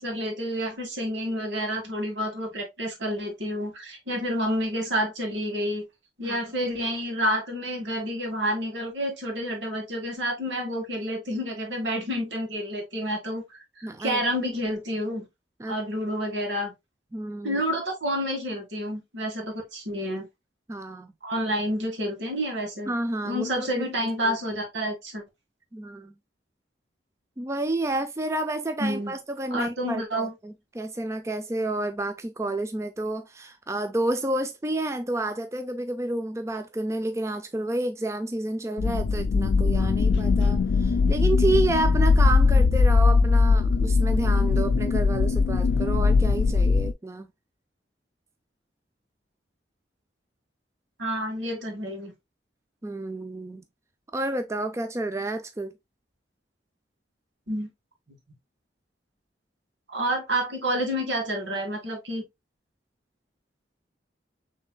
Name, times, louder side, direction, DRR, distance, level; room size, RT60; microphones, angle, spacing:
voice 1, 0.0-5.9 6.2-15.3 15.7-16.7 17.4-20.3 21.2-22.9 23.2-25.2 28.8-29.1 29.5-30.3 51.0-52.1 57.5-57.7 58.1-58.2 59.9-62.2, equal, 90° right, 1.9 m, -29 dB
voice 2, 13.8-14.2 15.6-15.8 17.1-17.6 20.7-21.1 22.9-23.8 24.2-24.4 25.7-26.1 27.4-47.3 52.8-53.6 54.1-55.7, right 2 dB, 15° right, 0.4 m, -30 dB
sound 1, 38.8-46.9, left 4 dB, 85° left, 0.4 m, -20 dB
6.2 x 3.3 x 2.2 m
head